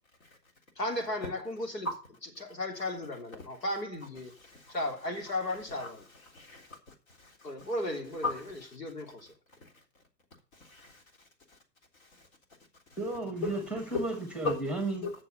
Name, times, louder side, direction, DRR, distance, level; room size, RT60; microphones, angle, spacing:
voice 1, 0.8-1.9 2.4-4.3 4.7-6.0 7.4-9.3, left 1 dB, 80° left, 3.3 m, -35 dB
voice 2, 4.4-4.8 5.8-5.9 6.3-6.8 7.2-7.7 8.2-8.3 10.6-11.0 12.9-13.0 13.4-13.6 13.9-14.0 14.4-14.6 15.0-15.1, left 3 dB, 55° left, 3.6 m, -35 dB
voice 3, 13.0-15.0, right 2 dB, ahead, 1.2 m, -33 dB
8.8 x 6.8 x 6.7 m
figure-of-eight pair, 120°, 49 cm